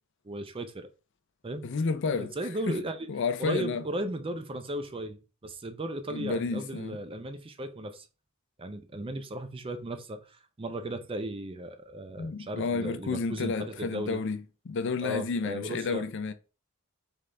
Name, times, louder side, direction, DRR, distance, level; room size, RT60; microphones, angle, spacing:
voice 1, 0.2-0.9 1.4-1.7 2.0-3.1 3.4-8.1 8.6-14.2 15.0-16.0, right 1 dB, 25° right, 0.5 m, -36 dB
voice 2, 1.6-2.3 2.7-2.8 3.1-3.8 6.1-7.0 12.2-14.4 14.7-16.3, left 4 dB, 55° left, 0.5 m, -31 dB
3.8 x 3.5 x 3.3 m
head